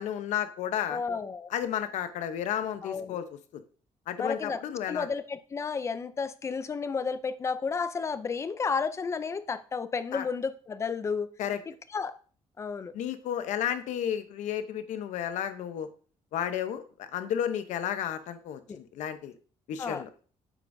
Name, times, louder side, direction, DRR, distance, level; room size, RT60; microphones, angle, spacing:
voice 1, 0.0-1.0 1.5-3.4 4.1-5.1 10.1-10.2 11.4-11.6 12.9-15.9 16.3-19.3 19.7-20.1, left 9 dB, 90° left, 0.8 m, -32 dB
voice 2, 0.9-1.5 2.8-3.2 4.2-4.6 4.9-11.3 11.9-12.1 12.6-12.9 19.8-20.0, left 5 dB, 25° left, 0.4 m, -32 dB
8.6 x 8.4 x 2.7 m
cardioid pair, 170°, 12 cm